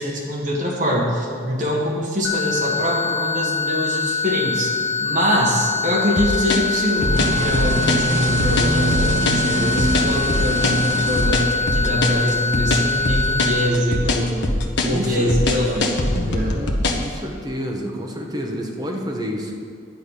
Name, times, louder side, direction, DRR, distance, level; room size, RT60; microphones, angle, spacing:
voice 1, 0.0-4.7 5.0-16.6, equal, 40° right, -3 dB, 1.9 m, -23 dB
sound 1, 2.2-13.7, left 4 dB, 10° left, 1.1 m, -24 dB
sound 2, 6.2-17.1, left 2 dB, 65° left, 1.0 m, -22 dB
sound 3, 7.0-11.9, right 2 dB, 85° right, 1.0 m, -25 dB
voice 2, 14.8-15.3 16.5-19.5, equal, 20° right, 0 dB, 1.0 m, -29 dB
10.5 x 5.4 x 8.3 m, 2.2 s
head